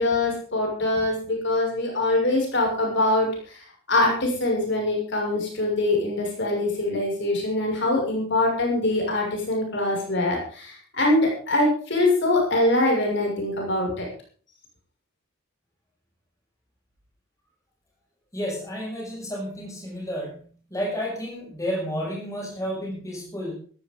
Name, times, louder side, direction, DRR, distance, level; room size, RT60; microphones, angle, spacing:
voice 1, 0.0-14.1, left 2 dB, 60° left, -1 dB, 6.5 m, -23 dB
voice 2, 18.3-23.5, equal, 15° left, -2 dB, 6.4 m, -31 dB
16.5 x 14.5 x 3.9 m, 0.43 s
head